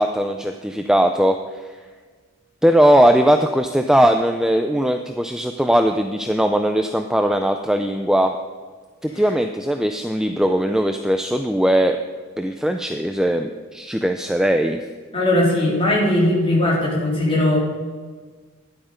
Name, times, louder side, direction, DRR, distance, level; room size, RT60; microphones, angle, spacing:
voice 1, 0.0-1.8 2.6-8.4 9.0-12.0 12.4-14.8, equal, 5° right, 6 dB, 0.3 m, -19 dB
voice 2, 15.1-17.6, left 1 dB, 25° left, -4 dB, 3.1 m, -19 dB
12.5 x 10.5 x 5.1 m, 1.5 s
head